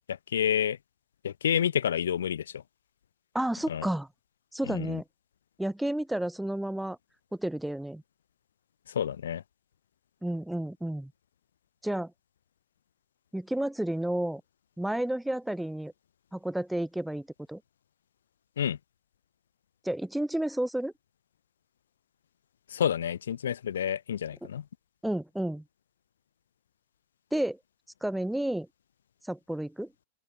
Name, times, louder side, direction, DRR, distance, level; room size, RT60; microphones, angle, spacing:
voice 1, 0.1-0.8 1.2-2.6 3.7-3.9 4.7-5.0 8.9-9.4 18.6-18.8 22.7-24.6, left 9 dB, 65° left, 0.8 m, -29 dB
voice 2, 3.3-4.1 4.5-5.0 5.6-7.0 7.4-8.0 10.2-11.1 11.8-12.1 13.3-14.4 14.8-15.9 16.3-17.6 19.8-20.9 25.0-25.6 27.3-27.6 28.0-28.7 29.3-29.9, right 1 dB, 5° right, 0.4 m, -31 dB
open air
figure-of-eight pair, 90°, 0 cm